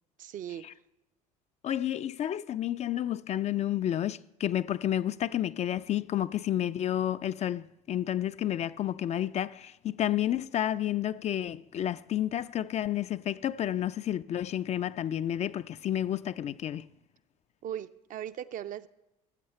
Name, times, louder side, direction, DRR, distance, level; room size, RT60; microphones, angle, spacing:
voice 1, 0.2-0.6 17.6-18.9, right 10 dB, 45° right, 0.5 m, -38 dB
voice 2, 1.6-16.9, left 11 dB, 35° left, 0.4 m, -30 dB
14.5 x 7.7 x 4.3 m
hypercardioid pair, 65°, 19 cm